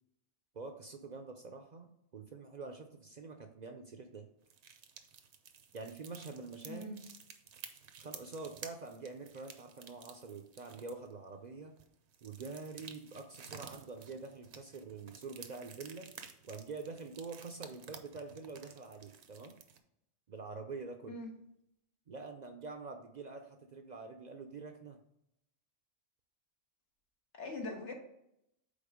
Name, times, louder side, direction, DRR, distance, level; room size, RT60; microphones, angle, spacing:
voice 1, 0.5-4.3 5.7-6.9 8.0-11.7 12.2-16.1 16.4-19.5 20.3-21.2 22.1-25.0, right 4 dB, 50° right, 5 dB, 0.6 m, -46 dB
sound 1, 4.5-11.1 11.8-19.8, right 7 dB, 70° right, 1.0 m, -53 dB
voice 2, 6.7-7.0 21.1-21.3 27.3-27.9, left 2 dB, 80° left, 1 dB, 1.7 m, -42 dB
5.3 x 4.3 x 5.0 m, 0.78 s
omnidirectional pair, 1.2 m